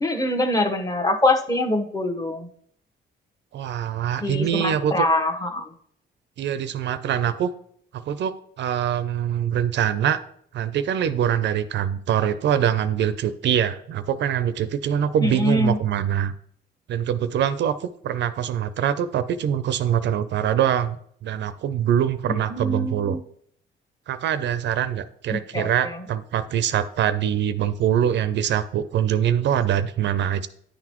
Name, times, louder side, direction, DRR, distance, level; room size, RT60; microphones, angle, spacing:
voice 1, 0.0-2.5 4.2-5.6 15.2-15.8 22.3-23.2 25.3-26.0, left 1 dB, 20° left, 5 dB, 1.0 m, -24 dB
voice 2, 3.5-5.1 6.4-7.5 7.9-10.2 10.5-16.3 16.9-23.2 24.1-30.5, right 9 dB, 65° right, 13 dB, 0.5 m, -24 dB
9.9 x 4.0 x 3.0 m, 0.64 s
cardioid pair, 90°, 20 cm